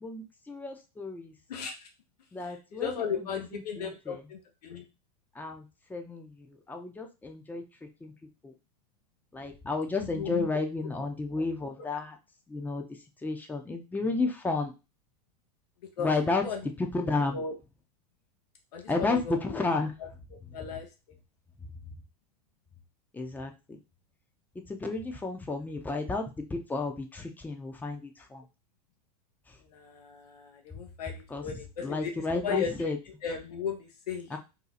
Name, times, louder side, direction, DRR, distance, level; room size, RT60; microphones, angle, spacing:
voice 1, 0.0-1.3 2.3-4.2 5.4-5.6 5.9-7.6 8.0-8.1 8.4-8.5 9.3-12.2 12.5-12.8 13.2-14.7 16.0-16.4 16.8-17.4 18.9-19.9 23.1-23.8 24.7-28.4 31.3-31.4 31.8-33.0 34.3-34.4, left 3 dB, 10° left, 4 dB, 0.6 m, -32 dB
voice 2, 1.5-1.9 2.4-4.8 10.0-10.5 16.0-16.1 16.4-16.6 17.3-17.5 18.7-19.6 20.5-20.9 29.7-32.1 32.4-32.7 33.2-34.3, left 6 dB, 85° left, 3 dB, 0.7 m, -35 dB
2.8 x 2.3 x 4.0 m, 0.28 s
hypercardioid pair, 100°, 20 cm